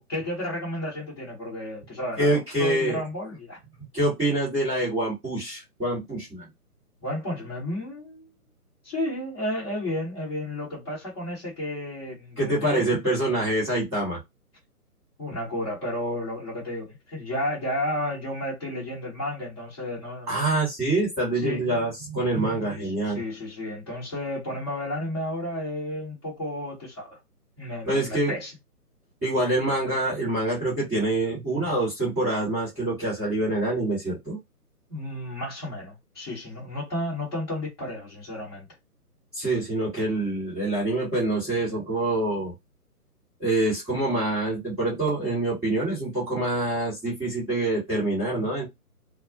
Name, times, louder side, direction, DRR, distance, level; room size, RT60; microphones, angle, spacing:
voice 1, 0.1-3.6 7.0-8.3 8.8-12.8 15.2-20.4 21.4-21.6 22.7-27.2 27.6-28.5 34.9-38.7, left 1 dB, 15° left, 1.0 m, -32 dB
voice 2, 2.2-3.0 3.8-6.5 12.4-14.2 20.3-23.2 27.9-28.3 29.2-34.4 39.3-42.5 43.4-48.7, right 2 dB, 5° right, 1.0 m, -26 dB
2.2 x 2.1 x 2.7 m
figure-of-eight pair, 140°, 46 cm